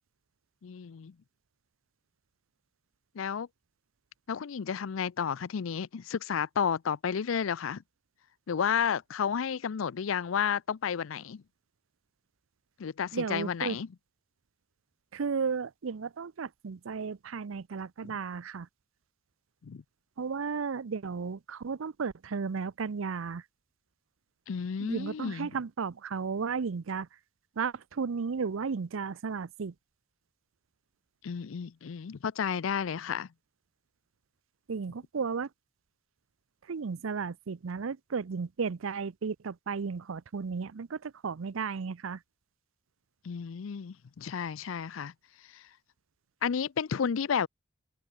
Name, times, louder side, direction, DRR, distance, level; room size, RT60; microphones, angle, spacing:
voice 1, 0.6-1.1 3.1-3.5 4.3-7.8 8.5-11.4 12.8-13.9 18.0-18.1 19.6-19.8 24.5-25.5 31.2-33.3 43.2-45.1 45.5-45.6 46.4-47.5, left 7 dB, 85° left, 0.5 m, -32 dB
voice 2, 13.1-13.8 15.1-18.7 20.2-23.4 24.8-27.1 27.6-29.7 34.7-35.5 36.7-42.2, right 5 dB, 90° right, 0.6 m, -34 dB
head